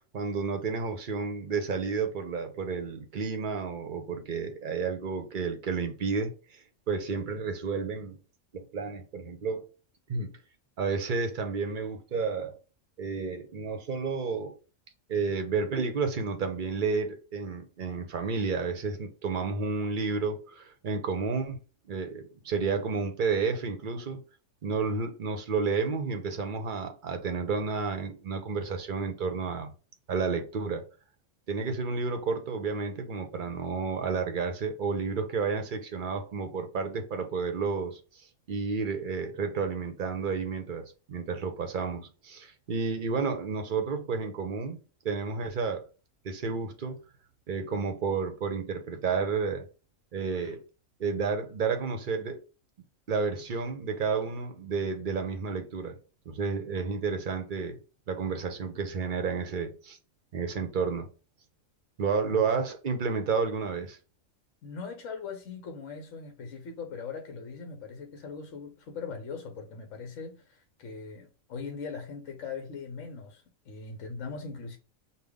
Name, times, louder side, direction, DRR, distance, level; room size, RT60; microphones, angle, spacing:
voice 1, 0.1-8.2 8.5-9.7 10.1-10.3 10.8-12.6 13.0-14.5 15.1-21.6 21.9-24.2 24.6-29.7 30.1-30.8 31.5-38.0 38.5-44.8 45.0-45.9 46.2-47.0 47.5-49.7 50.1-50.6 51.0-52.4 53.1-56.0 56.3-57.8 58.1-60.0 60.3-61.1 62.0-64.0, right 5 dB, 50° right, 0.7 m, -31 dB
voice 2, 64.6-74.8, left 5 dB, 70° left, 1.1 m, -40 dB
5.3 x 2.3 x 3.4 m
omnidirectional pair, 1.3 m